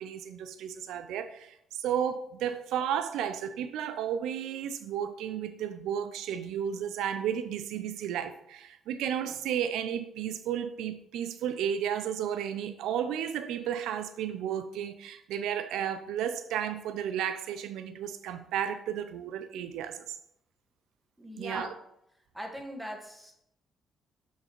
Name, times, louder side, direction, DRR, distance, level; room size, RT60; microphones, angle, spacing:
voice 1, 0.0-20.2 21.4-21.7, right 9 dB, 90° right, 0.4 m, -33 dB
voice 2, 21.2-21.8 22.3-23.4, equal, 5° right, 1.6 m, -40 dB
6.6 x 6.4 x 3.0 m
cardioid pair, 90°, 0 cm